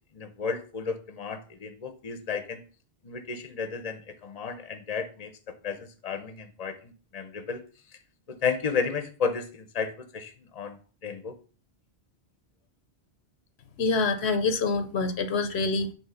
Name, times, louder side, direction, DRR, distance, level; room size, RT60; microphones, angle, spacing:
voice 1, 0.1-2.6 3.0-7.6 8.4-11.4, left 5 dB, 40° left, 0.9 m, -33 dB
voice 2, 13.8-15.9, left 3 dB, 80° left, 1.1 m, -26 dB
8.0 x 3.2 x 5.7 m
omnidirectional pair, 1.1 m